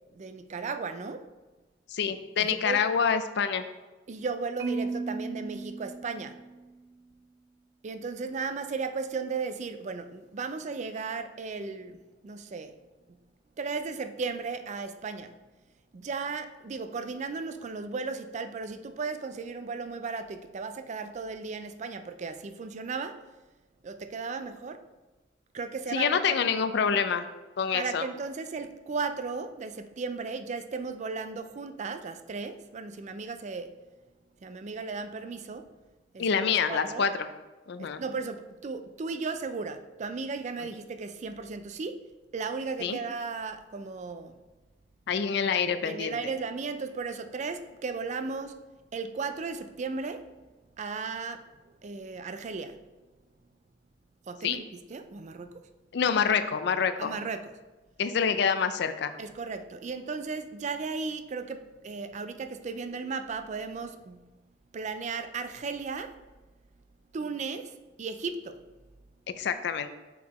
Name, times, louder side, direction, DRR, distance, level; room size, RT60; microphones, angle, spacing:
voice 1, 0.1-1.3 2.4-2.8 4.1-6.4 7.8-12.7 13.6-15.4 15.9-23.2 23.8-24.8 25.5-26.4 27.7-33.8 34.4-35.7 36.1-37.1 37.8-42.0 42.3-44.4 45.8-48.7 48.9-50.3 50.8-51.5 51.8-52.8 54.3-54.6 54.9-55.6 57.0-57.5 59.2-64.3 64.7-66.1 67.1-68.7, right 4 dB, 40° right, 9 dB, 0.4 m, -35 dB
voice 2, 1.9-3.6 25.9-27.2 27.6-28.1 36.2-37.1 37.7-38.0 42.8-43.0 45.1-46.2 54.4-54.6 55.9-57.1 58.0-59.1 69.4-69.9, left 6 dB, 65° left, 10 dB, 0.4 m, -26 dB
Marimba xylophone, 4.6-6.8, right 3 dB, 65° right, 0.7 m, -36 dB
5.3 x 4.8 x 4.2 m, 1.2 s
head